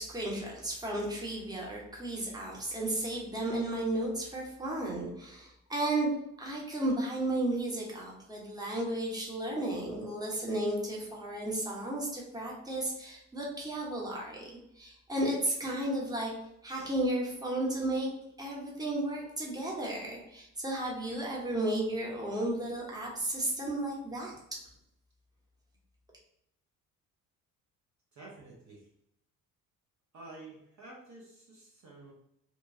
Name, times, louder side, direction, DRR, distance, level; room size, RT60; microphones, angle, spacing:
voice 1, 0.0-6.1 6.4-14.5 14.8-16.3 16.6-18.1 18.4-24.6, right 1 dB, 10° right, -3 dB, 1.0 m, -33 dB
voice 2, 28.1-28.9 30.1-32.1, right 2 dB, 40° right, -3 dB, 0.9 m, -50 dB
3.0 x 2.2 x 2.6 m, 0.78 s
hypercardioid pair, 55°, 43 cm